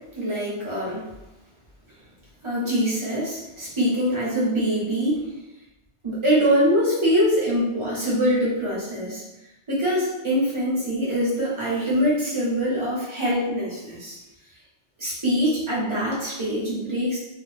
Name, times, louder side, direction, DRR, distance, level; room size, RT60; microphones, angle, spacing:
voice 1, 0.1-1.1 2.4-5.2 6.0-9.2 9.7-14.2 15.0-17.2, equal, 25° right, -8 dB, 1.0 m, -23 dB
2.5 x 2.2 x 3.2 m, 0.96 s
omnidirectional pair, 1.2 m